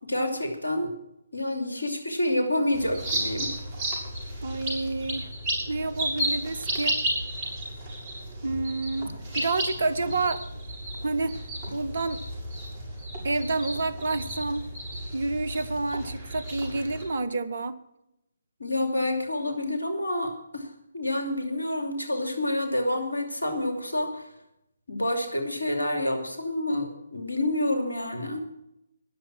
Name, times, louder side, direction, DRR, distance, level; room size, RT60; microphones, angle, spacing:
voice 1, 0.0-0.9 1.3-3.5 18.6-24.3 24.9-28.4, left 1 dB, 80° left, 5 dB, 2.7 m, -28 dB
sound 1, 2.7-17.0, right 1 dB, 30° right, 7.1 m, -33 dB
voice 2, 4.4-5.3 5.7-7.0 8.4-10.4 11.0-11.4 11.7-12.2 13.2-14.6 15.1-17.8, right 3 dB, 55° right, 14 dB, 1.2 m, -29 dB
21.0 x 7.4 x 6.0 m, 0.83 s
figure-of-eight pair, 140°, 0 cm